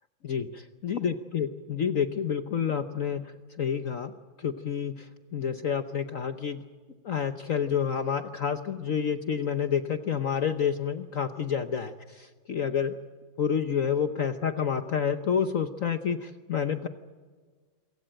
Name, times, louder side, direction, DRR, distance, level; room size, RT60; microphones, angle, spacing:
voice 1, 0.2-3.3 3.6-4.1 4.4-6.6 7.0-12.9 13.4-16.9, left 7 dB, 55° left, 9 dB, 1.0 m, -29 dB
27.0 x 16.5 x 9.0 m, 1.5 s
omnidirectional pair, 2.2 m